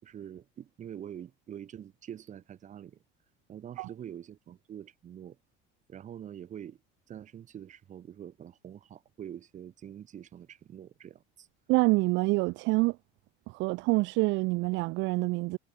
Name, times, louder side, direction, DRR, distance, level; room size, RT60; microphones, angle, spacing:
voice 1, 0.0-3.0 3.5-5.4 5.9-6.8 7.1-11.5, right 9 dB, 35° right, 4.6 m, -45 dB
voice 2, 11.7-13.0 13.5-15.6, right 23 dB, 65° right, 0.7 m, -26 dB
cardioid pair, 145°, 21 cm